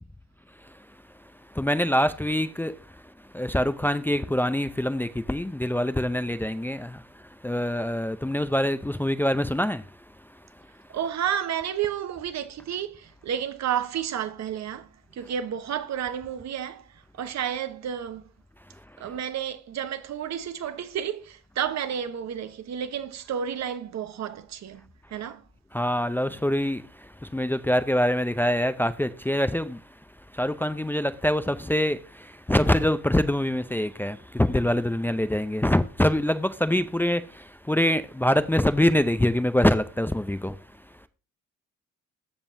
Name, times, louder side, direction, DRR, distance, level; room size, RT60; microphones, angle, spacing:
voice 1, 0.6-10.9 18.7-19.2 25.7-41.1, left 1 dB, 5° left, 0.5 m, -25 dB
voice 2, 10.9-18.2 19.0-24.8 25.1-25.4, right 9 dB, 65° right, 1.0 m, -31 dB
14.5 x 5.3 x 2.7 m
cardioid pair, 90°, 30 cm